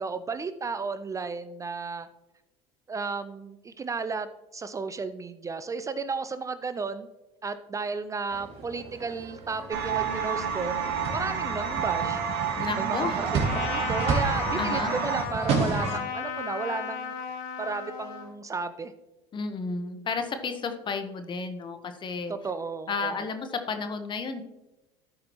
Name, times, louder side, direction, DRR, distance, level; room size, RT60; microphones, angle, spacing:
voice 1, 0.0-2.1 2.9-4.3 4.5-7.1 7.4-10.8 11.1-12.2 12.7-13.3 13.5-17.2 17.6-18.9 22.3-23.3, right 4 dB, 25° right, 11 dB, 0.5 m, -33 dB
sound 1, 8.3-16.0, right 4 dB, 50° right, 2.3 m, -33 dB
sound 2, 9.7-15.2, right 7 dB, 75° right, 1.5 m, -30 dB
voice 2, 12.6-13.2 14.6-14.9 19.3-22.3 22.9-24.4, left 4 dB, 35° left, 7 dB, 1.1 m, -32 dB
Trumpet, 13.4-18.3, left 7 dB, 65° left, 1.4 m, -35 dB
13.0 x 5.0 x 3.0 m, 0.98 s
supercardioid pair, 85°, 13 cm